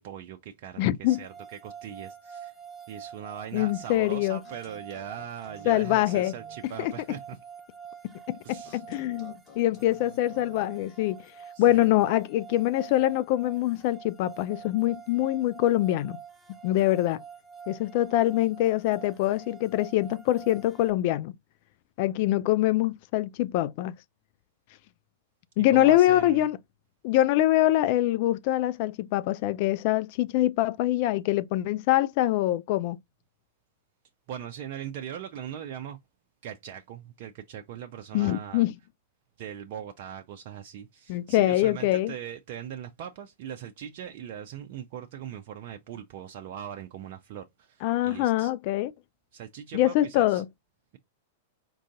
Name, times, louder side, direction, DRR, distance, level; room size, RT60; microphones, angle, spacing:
voice 1, 0.0-2.5 2.9-7.4 8.4-8.8 11.5-12.0 25.6-26.4 34.3-36.0 36.4-38.6 39.4-48.5 49.3-50.4, right 9 dB, 50° right, 0.5 m, -40 dB
voice 2, 0.8-1.2 3.5-4.4 5.7-6.3 6.8-6.9 8.3-11.3 11.6-16.2 16.6-17.2 17.7-21.3 22.0-23.9 25.6-26.6 27.0-33.0 38.1-38.7 41.1-42.1 47.8-48.9 49.7-50.5, left 14 dB, 50° left, 0.3 m, -24 dB
sound 1, 1.1-20.9, right 7 dB, 10° right, 1.1 m, -47 dB
sound 2, 4.4-6.7 8.6-10.9, left 2 dB, 30° left, 1.6 m, -53 dB
4.6 x 2.5 x 3.7 m
figure-of-eight pair, 100°, 0 cm